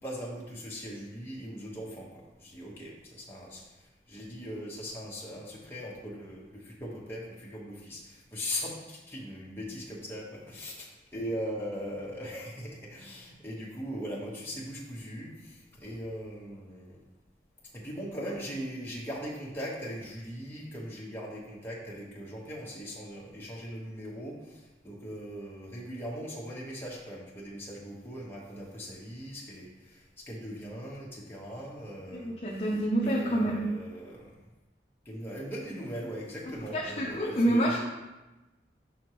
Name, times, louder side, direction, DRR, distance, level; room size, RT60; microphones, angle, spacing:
voice 1, 0.0-3.6 4.1-10.9 11.1-17.0 17.7-30.0 30.3-32.7 33.0-34.3 35.0-37.8, equal, 15° left, -5 dB, 1.2 m, -40 dB
voice 2, 32.1-33.6 36.7-37.8, right 1 dB, 35° left, -4 dB, 0.6 m, -27 dB
6.2 x 5.9 x 3.0 m, 1.1 s
head